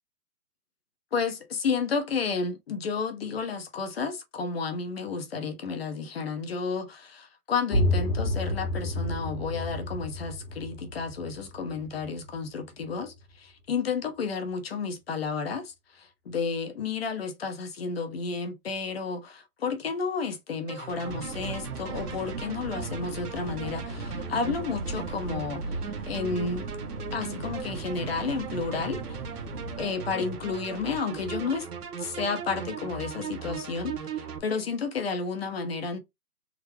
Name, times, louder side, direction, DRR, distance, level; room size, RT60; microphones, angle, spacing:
voice 1, 1.1-25.6 26.0-26.7 27.1-29.2 29.8-31.7 32.0-36.0, left 5 dB, 40° left, 0.7 m, -31 dB
sound 1, 7.7-13.3, left 1 dB, 80° left, 1.3 m, -30 dB
sound 2, 20.7-34.4, right 5 dB, 75° right, 1.1 m, -38 dB
sound 3, 21.1-29.9, right 3 dB, 20° right, 1.1 m, -39 dB
3.6 x 2.1 x 3.2 m
hypercardioid pair, 160°, 47 cm